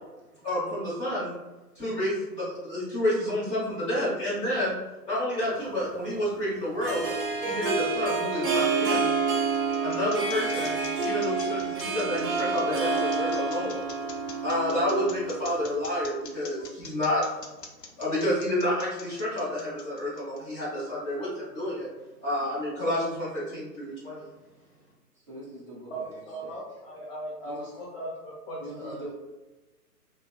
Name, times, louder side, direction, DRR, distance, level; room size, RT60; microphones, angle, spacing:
voice 1, 0.4-1.4 1.7-4.8 5.1-7.1 7.4-9.2 9.8-13.8 14.4-17.2 18.0-21.9 22.2-24.3, left 1 dB, 15° left, 1.0 m, -29 dB
Harp, 5.4-15.9, right 4 dB, 60° right, 0.7 m, -29 dB
sound 1, 9.2-20.8, left 5 dB, 80° left, 0.6 m, -45 dB
voice 2, 25.2-26.6 27.4-27.8 28.6-29.1, right 1 dB, 20° right, 0.4 m, -43 dB
voice 3, 25.9-29.1, right 1 dB, 45° left, 0.7 m, -38 dB
2.6 x 2.2 x 2.3 m
figure-of-eight pair, 125°, 48 cm